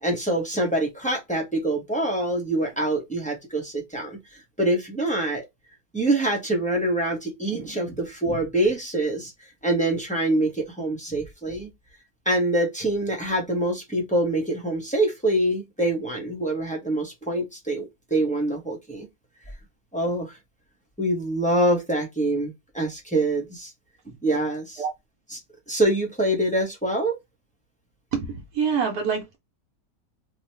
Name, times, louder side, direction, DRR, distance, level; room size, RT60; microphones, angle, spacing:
voice 1, 0.0-5.4 5.9-9.3 9.6-11.7 12.2-19.1 19.9-20.4 21.0-23.7 24.2-24.8 25.3-25.4 25.7-27.2, right 1 dB, 5° left, 0.5 m, -25 dB
voice 2, 28.1-29.4, right 6 dB, 65° right, 1.2 m, -26 dB
2.8 x 2.4 x 3.3 m
omnidirectional pair, 1.8 m